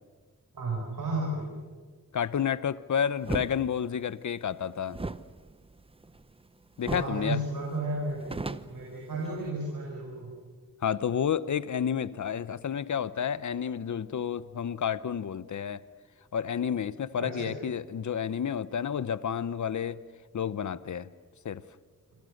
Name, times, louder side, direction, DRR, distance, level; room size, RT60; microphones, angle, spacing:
voice 1, 0.5-1.6 6.9-10.3 17.2-17.5, right 2 dB, 90° right, -2 dB, 5.8 m, -33 dB
voice 2, 2.1-5.0 6.8-7.4 10.8-15.8 16.3-20.0 20.3-21.1 21.4-21.6, left 8 dB, 65° left, 16 dB, 0.9 m, -30 dB
sound 1, 3.2-3.5 4.9-6.5 6.8-7.2 7.5-7.6 8.0-9.5, right 3 dB, 15° right, 0.8 m, -36 dB
27.0 x 26.0 x 6.6 m, 1.5 s
wide cardioid pair, 110°, 32 cm